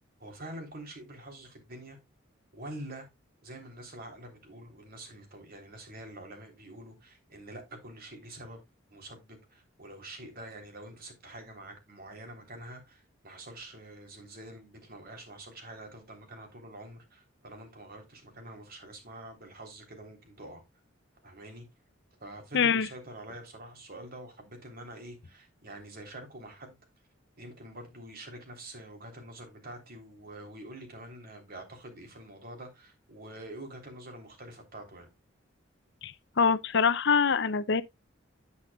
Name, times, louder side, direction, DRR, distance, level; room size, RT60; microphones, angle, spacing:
voice 1, 0.2-2.0 2.5-3.1 3.4-8.6 8.9-20.6 21.2-21.7 22.2-26.8 27.4-35.1, right 1 dB, 50° right, 3.4 m, -46 dB
voice 2, 22.5-22.9 36.0-37.8, left 6 dB, 60° left, 0.6 m, -25 dB
9.7 x 8.6 x 2.3 m
head